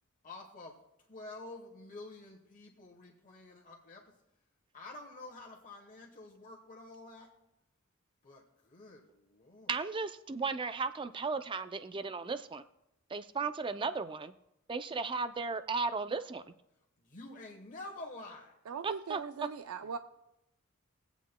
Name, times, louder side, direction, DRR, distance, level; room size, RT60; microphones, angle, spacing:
voice 1, 0.2-4.1 4.7-7.3 8.2-9.7 17.0-18.6 19.8-20.0, left 2 dB, 40° left, 0 dB, 1.1 m, -49 dB
voice 2, 9.7-12.6 13.1-14.3 14.7-16.4 18.8-19.5, right 4 dB, 25° right, 11 dB, 0.4 m, -35 dB
voice 3, 18.7-20.0, right 6 dB, 85° right, 10 dB, 0.4 m, -40 dB
22.5 x 8.2 x 2.2 m, 0.85 s
head